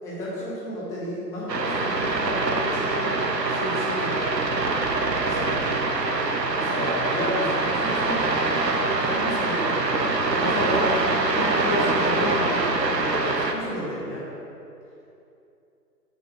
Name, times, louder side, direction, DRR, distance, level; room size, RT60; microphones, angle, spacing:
voice 1, 0.0-3.2 3.5-4.4 5.2-5.7 6.5-8.3 9.0-14.2, left 1 dB, 5° left, -6 dB, 0.7 m, -32 dB
sound 1, 1.5-13.5, right 3 dB, 80° right, 1.1 m, -24 dB
6.8 x 6.5 x 5.7 m, 2.7 s
figure-of-eight pair, 135°, 49 cm